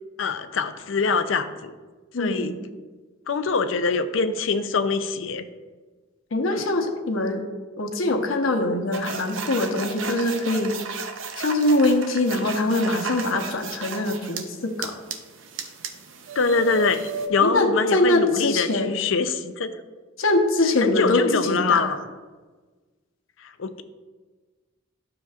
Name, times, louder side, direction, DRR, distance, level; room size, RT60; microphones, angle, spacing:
voice 1, 0.2-1.7 2.2-2.6 3.3-5.5 6.5-6.7 16.3-19.8 20.8-22.0 23.4-23.8, left 4 dB, 70° left, 11 dB, 0.5 m, -24 dB
voice 2, 2.1-2.6 6.3-7.4 7.8-10.7 11.4-15.0 17.4-19.0 20.2-21.9, left 2 dB, 90° left, 4 dB, 1.0 m, -23 dB
sound 1, 8.9-14.4 14.8-17.3, right 5 dB, 70° right, 0.7 m, -34 dB
11.5 x 7.0 x 2.4 m, 1.3 s
head